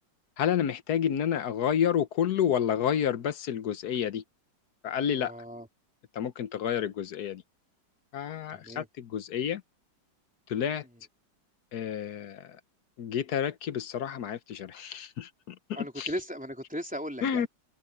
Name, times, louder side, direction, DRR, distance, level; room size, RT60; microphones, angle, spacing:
voice 1, 0.4-4.2 4.8-5.3 6.1-7.4 8.1-9.6 10.5-10.8 11.7-12.6 13.0-15.6 16.0-16.1 17.2-17.5, left 9 dB, 60° left, 1.3 m, -29 dB
voice 2, 5.2-5.7 8.5-8.9 15.8-17.5, equal, 5° right, 3.7 m, -37 dB
omnidirectional pair, 2.0 m